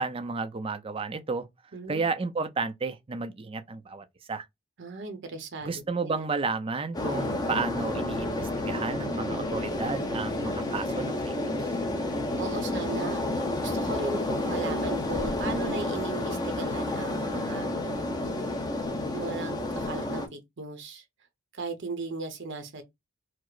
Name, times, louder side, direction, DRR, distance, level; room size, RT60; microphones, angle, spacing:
voice 1, 0.0-1.5 1.9-4.4 5.7-11.7, right 4 dB, 25° right, 0.4 m, -32 dB
voice 2, 1.7-2.1 4.8-6.3 12.4-17.7 19.1-21.0 21.5-22.8, right 3 dB, 55° right, 0.7 m, -37 dB
sound 1, 6.9-20.3, left 2 dB, 20° left, 0.6 m, -30 dB
4.6 x 2.0 x 2.4 m
head